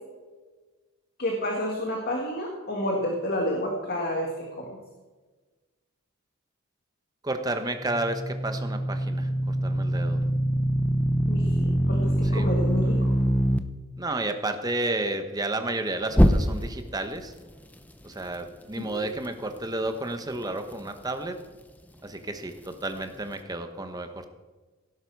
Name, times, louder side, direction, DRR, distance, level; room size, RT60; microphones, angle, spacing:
voice 1, 1.2-4.8 11.3-13.2 18.8-19.0, left 1 dB, 45° left, 0 dB, 1.9 m, -30 dB
voice 2, 7.2-10.2 12.2-12.5 14.0-17.3 18.0-21.4 22.0-24.3, right 2 dB, 15° right, 7 dB, 1.0 m, -31 dB
sound 1, 7.8-13.6 16.1-16.9, equal, 5° left, 0.6 m, -24 dB
17.5 x 11.0 x 4.7 m, 1.3 s
head